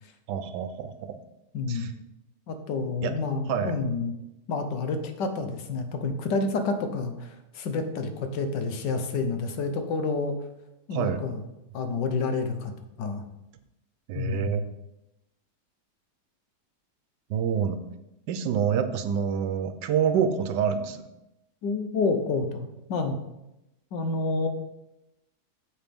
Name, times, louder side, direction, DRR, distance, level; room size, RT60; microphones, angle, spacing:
voice 1, 0.3-1.2 1.7-1.9 3.0-3.1 3.5-3.8 10.9-11.2 14.1-14.6 17.3-17.8 18.3-21.0, right 7 dB, 85° right, 10 dB, 1.3 m, -27 dB
voice 2, 1.5-1.9 2.5-4.1 4.5-10.4 10.9-11.4 11.7-12.7 13.0-13.2 14.1-14.6 21.6-22.6 22.9-23.2 23.9-24.5, left 3 dB, 90° left, 7 dB, 1.6 m, -29 dB
8.9 x 7.2 x 3.6 m, 0.91 s
omnidirectional pair, 1.8 m